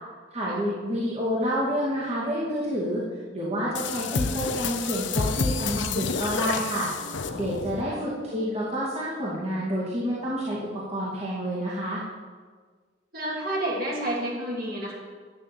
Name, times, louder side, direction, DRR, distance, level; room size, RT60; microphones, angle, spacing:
voice 1, 0.3-3.0 3.3-6.9 7.3-12.0, equal, 35° right, -7 dB, 2.4 m, -29 dB
sound 1, 3.7-7.9, left 4 dB, 85° left, 0.7 m, -29 dB
voice 2, 4.0-4.4 7.8-8.0 13.1-14.9, right 1 dB, 55° right, -4 dB, 2.9 m, -31 dB
10.0 x 6.4 x 7.7 m, 1.5 s
head